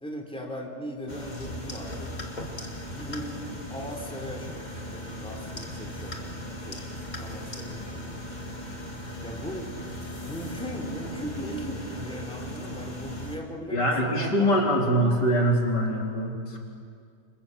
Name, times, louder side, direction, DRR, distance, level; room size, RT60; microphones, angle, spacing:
voice 1, 0.0-2.1 2.9-3.4 3.7-6.9 7.2-8.2 9.2-9.7 10.2-14.8, equal, 5° left, 1 dB, 3.6 m, -38 dB
sound 1, 1.1-13.4, equal, 25° left, 2.3 m, -37 dB
voice 2, 13.7-16.6, equal, 85° left, -1 dB, 4.6 m, -23 dB
28.5 x 27.5 x 7.5 m, 2.2 s
omnidirectional pair, 1.8 m